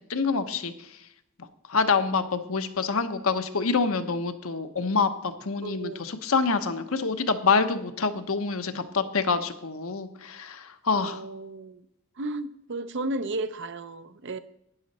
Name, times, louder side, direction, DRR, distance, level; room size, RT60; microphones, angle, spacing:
voice 1, 0.1-0.7 1.7-11.2, left 4 dB, 70° left, 8 dB, 0.9 m, -26 dB
voice 2, 5.6-6.1 10.9-11.9 12.2-14.4, right 2 dB, 55° right, 12 dB, 0.6 m, -34 dB
12.0 x 9.9 x 4.2 m, 0.78 s
head